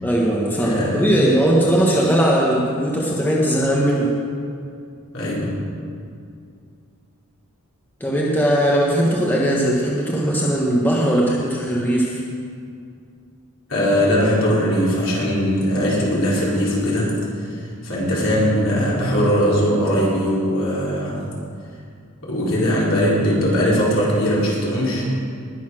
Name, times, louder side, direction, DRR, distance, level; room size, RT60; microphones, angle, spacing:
voice 1, 0.0-4.1 8.0-12.2, right 1 dB, 10° left, -4 dB, 1.3 m, -19 dB
voice 2, 0.6-1.1 5.1-5.5 13.7-17.1 17.8-21.2 22.2-25.1, equal, 60° left, -6 dB, 4.2 m, -20 dB
20.0 x 7.0 x 6.2 m, 2.4 s
head